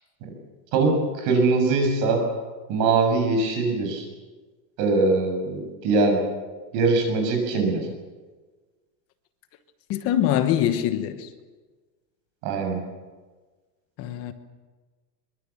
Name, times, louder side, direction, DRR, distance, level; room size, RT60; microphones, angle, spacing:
voice 1, 0.7-2.2 2.7-4.1 4.8-6.2 6.7-7.9 12.4-12.8, right 3 dB, 40° right, 6.9 m, -22 dB
voice 2, 9.9-11.3 14.0-14.3, left 11 dB, 30° left, 1.2 m, -23 dB
23.5 x 23.5 x 7.3 m
supercardioid pair, 175°, 49 cm